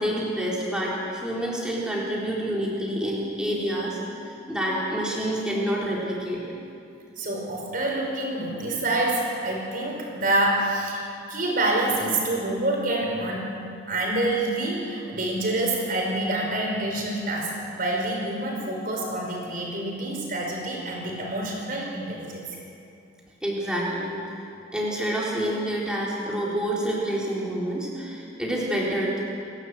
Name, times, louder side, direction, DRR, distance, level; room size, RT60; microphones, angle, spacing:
voice 1, 0.0-4.0 4.5-6.4 23.4-24.2 24.7-29.2, right 1 dB, 5° right, -5 dB, 4.1 m, -27 dB
voice 2, 7.2-13.6 13.9-22.4, right 1 dB, 45° right, -1 dB, 4.8 m, -27 dB
28.5 x 12.5 x 8.1 m, 2.5 s
head